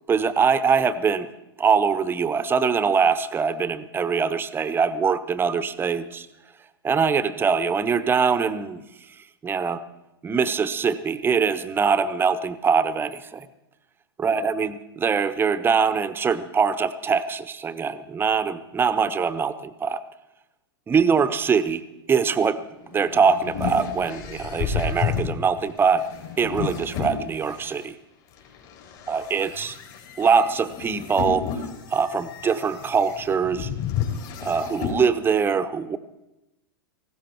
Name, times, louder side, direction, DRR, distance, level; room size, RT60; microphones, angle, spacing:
voice 1, 0.1-1.3 1.6-6.3 6.8-8.8 9.4-9.8 10.2-13.5 14.2-20.0 20.9-26.1 26.4-28.0 29.1-29.8 30.2-33.7 34.4-36.0, right 6 dB, 15° right, 13 dB, 0.8 m, -23 dB
sound 1, 22.7-27.8 28.4-35.0, left 7 dB, 50° left, 3.8 m, -31 dB
18.0 x 16.0 x 4.6 m, 0.96 s
hypercardioid pair, 105°, 13 cm